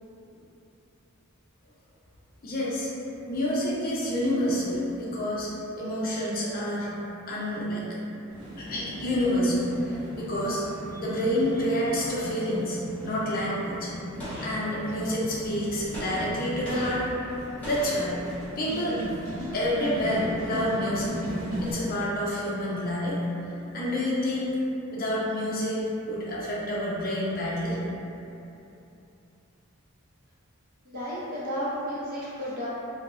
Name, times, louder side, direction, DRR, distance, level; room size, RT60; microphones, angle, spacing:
voice 1, 2.4-2.9 3.3-5.5 5.8-6.9 7.3-7.8 8.6-10.6 10.9-13.9 14.4-17.1 17.6-18.2 18.6-19.0 19.5-21.2 21.6-23.2 23.7-24.6 24.9-27.8, equal, 45° left, -6 dB, 0.5 m, -28 dB
sound 1, 8.3-21.7, equal, 85° right, 0.6 m, -38 dB
Gunshot gunfire, 14.2-15.3 15.9-18.7, equal, 5° left, 0.8 m, -39 dB
voice 2, 30.8-32.7, equal, 45° right, -8 dB, 0.5 m, -32 dB
3.1 x 2.0 x 2.4 m, 2.8 s
head